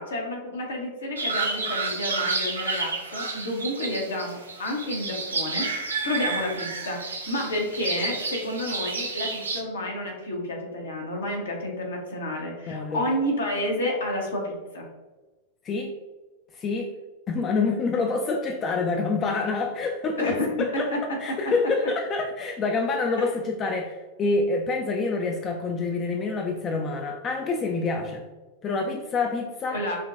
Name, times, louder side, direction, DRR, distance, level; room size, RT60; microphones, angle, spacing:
voice 1, 0.0-14.9 20.2-21.0 23.2-23.3 29.7-30.0, left 1 dB, 70° left, -1 dB, 0.9 m, -30 dB
sound 1, 1.2-9.6, right 3 dB, 75° right, 0.4 m, -30 dB
voice 2, 12.7-13.1 15.6-15.9 16.5-16.9 17.3-20.9 21.2-28.2 28.6-29.8, left 3 dB, 30° left, 2 dB, 0.4 m, -27 dB
5.2 x 2.2 x 2.5 m, 1.2 s
figure-of-eight pair, 90°, 0 cm